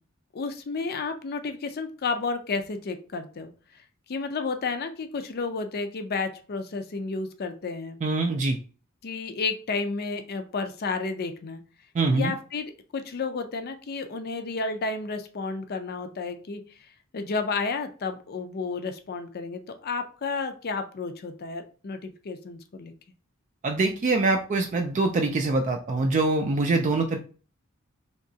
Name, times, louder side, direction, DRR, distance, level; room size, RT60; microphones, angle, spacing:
voice 1, 0.3-3.5 4.1-8.0 9.0-11.6 12.1-16.6 17.1-22.9, left 4 dB, 50° left, 7 dB, 0.5 m, -31 dB
voice 2, 8.0-8.6 11.9-12.3 23.6-27.2, right 3 dB, 35° right, 4 dB, 0.3 m, -24 dB
3.5 x 2.9 x 2.7 m, 0.39 s
head